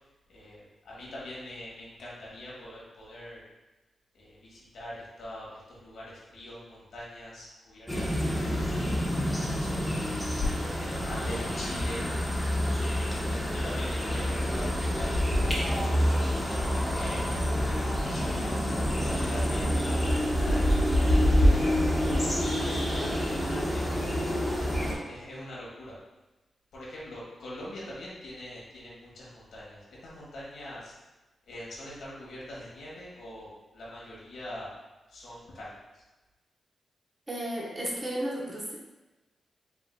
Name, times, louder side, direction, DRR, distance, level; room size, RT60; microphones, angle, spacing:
voice 1, 0.3-3.4 4.1-9.9 10.4-12.0 12.4-17.2 17.6-20.9 21.3-21.9 22.2-23.9 24.8-26.0 26.7-31.0 31.5-34.8 35.1-36.0, left 1 dB, 85° left, -6 dB, 1.5 m, -42 dB
sound 1, 7.9-24.9, equal, 10° left, 0.9 m, -27 dB
voice 2, 37.3-38.8, right 1 dB, 25° right, -4 dB, 0.9 m, -33 dB
4.8 x 3.6 x 2.2 m, 1.1 s
cardioid pair, 100°, 0 cm